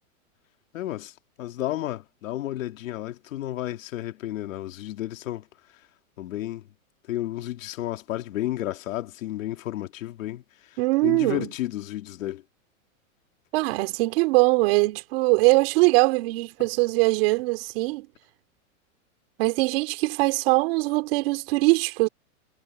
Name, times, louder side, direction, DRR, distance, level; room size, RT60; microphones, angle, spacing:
voice 1, 0.7-5.5 6.2-6.6 7.1-10.4 11.0-12.4, left 14 dB, 65° left, 2.5 m, -32 dB
voice 2, 10.8-11.5 13.5-18.1 19.4-22.1, right 24 dB, 45° right, 3.1 m, -22 dB
supercardioid pair, 160°, 42 cm